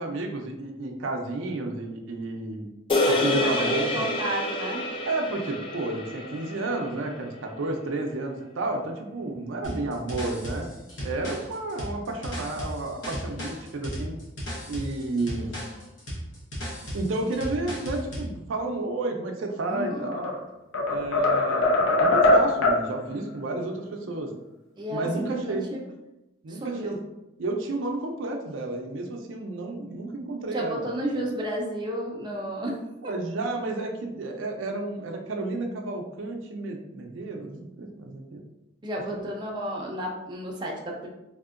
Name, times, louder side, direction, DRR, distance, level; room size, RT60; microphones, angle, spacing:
voice 1, 0.0-2.7 3.1-3.9 5.1-10.7 11.0-14.1 14.7-15.5 16.9-20.3 20.9-24.3 24.9-25.7 26.4-27.0 27.4-30.8 33.0-38.4 39.1-39.2, right 2 dB, 85° right, 3 dB, 0.5 m, -31 dB
sound 1, 2.9-7.4, left 1 dB, 25° left, 0.4 m, -28 dB
voice 2, 3.1-4.9 19.7-20.1 24.0-24.2 24.8-25.8 26.5-27.0 30.5-32.8 33.0-33.1 38.8-41.1, right 1 dB, 25° right, -2 dB, 0.5 m, -32 dB
sound 2, 9.6-18.3, equal, 70° left, 0.9 m, -35 dB
sound 3, 19.9-20.4 20.7-22.9, left 2 dB, 90° left, 0.5 m, -21 dB
3.5 x 2.6 x 2.4 m, 0.94 s
head